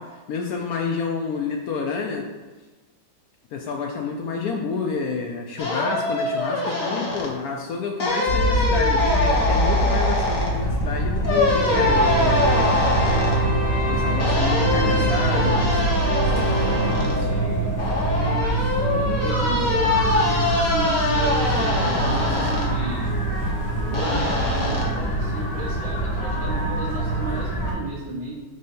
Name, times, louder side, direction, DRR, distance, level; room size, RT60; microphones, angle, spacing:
voice 1, 0.0-2.3 3.5-12.5 13.9-15.7, left 5 dB, 75° left, 2 dB, 0.8 m, -29 dB
sound 1, 5.6-7.3 8.0-10.5 11.2-13.4 14.2-17.1 17.8-22.7 23.9-24.8, left 2 dB, 50° left, 1.4 m, -24 dB
sound 2, 8.3-27.7, right 1 dB, 10° left, 1.1 m, -24 dB
sound 3, 11.7-18.0, right 1 dB, 10° right, 0.8 m, -26 dB
voice 2, 14.7-15.1 16.8-28.4, right 3 dB, 75° right, -7 dB, 1.8 m, -33 dB
6.7 x 2.8 x 5.3 m, 1.2 s
omnidirectional pair, 2.0 m